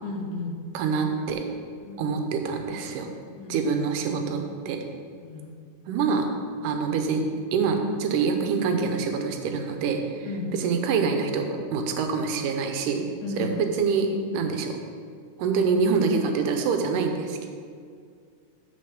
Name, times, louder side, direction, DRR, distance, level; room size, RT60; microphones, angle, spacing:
voice 1, 0.0-0.6 1.8-2.1 3.4-3.6 5.2-5.6 10.3-10.5 13.2-13.5, left 3 dB, 75° left, 2 dB, 2.4 m, -33 dB
voice 2, 0.7-1.4 2.0-3.1 3.5-4.8 5.9-6.3 6.6-7.2 7.5-10.3 10.5-13.1 13.4-14.8 15.4-17.5, right 5 dB, 85° right, 5 dB, 2.5 m, -25 dB
6.7 x 6.2 x 7.1 m, 2.1 s
omnidirectional pair, 3.7 m